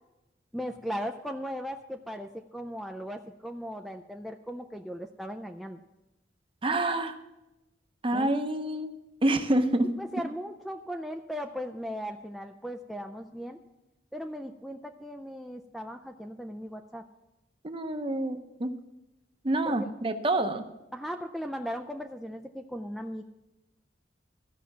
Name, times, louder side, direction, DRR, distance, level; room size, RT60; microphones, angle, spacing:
voice 1, 0.5-5.8 8.1-8.3 10.0-13.6 14.1-17.0 19.7-19.9 20.9-23.2, equal, ahead, 5 dB, 0.4 m, -37 dB
voice 2, 6.6-7.1 8.0-8.9 9.2-9.9 17.6-18.7 19.4-20.7, right 1 dB, 30° right, 8 dB, 0.8 m, -27 dB
14.5 x 5.7 x 7.2 m, 0.97 s
head